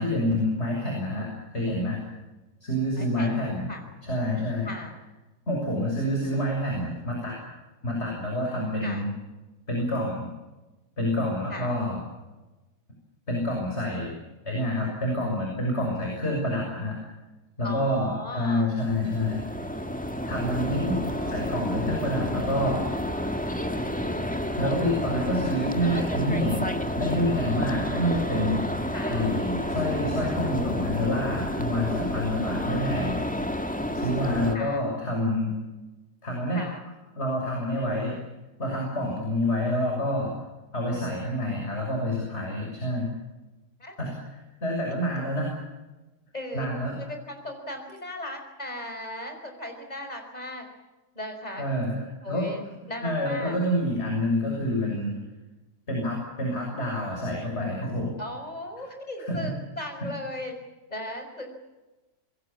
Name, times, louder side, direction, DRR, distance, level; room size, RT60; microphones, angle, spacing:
voice 1, 0.0-2.0 2.6-3.7 4.0-4.7 5.5-7.4 7.8-9.1 9.7-10.3 11.0-12.0 13.3-14.2 14.5-17.0 17.6-19.4 20.2-21.0 21.3-22.9 24.5-26.7 27.0-28.6 29.1-33.2 33.9-35.6 36.2-36.6 37.2-38.2 38.6-40.3 40.7-43.1 44.0-45.6 46.5-47.1 51.6-52.0 52.3-52.5 53.0-55.1 55.9-58.1 59.2-59.5, left 1 dB, 40° left, -1 dB, 7.1 m, -27 dB
voice 2, 3.0-3.3 3.7-3.8 4.7-4.9 8.8-9.0 11.5-11.8 17.6-18.7 21.0-21.4 28.9-29.3 34.2-34.8 36.5-36.8 43.8-43.9 46.3-46.7 47.0-50.7 51.2-51.7 52.2-53.6 58.2-60.5 60.9-61.6, left 1 dB, 25° left, 5 dB, 5.5 m, -37 dB
sound 1, 18.8-34.6, left 1 dB, 5° left, 1.9 m, -30 dB
26.5 x 21.5 x 7.3 m, 1.1 s
omnidirectional pair, 1.7 m